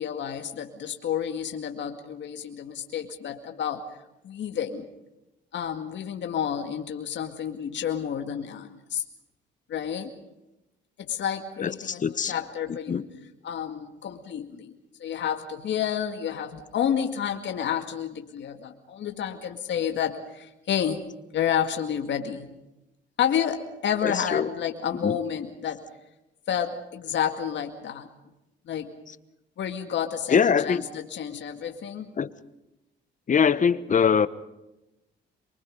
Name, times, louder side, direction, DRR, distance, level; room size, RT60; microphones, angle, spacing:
voice 1, 0.0-3.9 4.2-4.9 5.5-9.0 9.7-10.1 11.0-13.1 13.4-14.7 15.0-21.0 21.3-22.5 23.2-25.8 26.5-28.1 28.7-28.9 29.6-32.1, left 8 dB, 65° left, 4 dB, 2.1 m, -30 dB
voice 2, 11.6-12.3 12.7-13.0 24.0-24.5 25.0-25.2 30.3-30.8 32.2-32.3 33.3-34.3, left 6 dB, 40° left, 15 dB, 1.1 m, -23 dB
24.5 x 23.5 x 5.4 m, 0.94 s
cardioid pair, 90°, 20 cm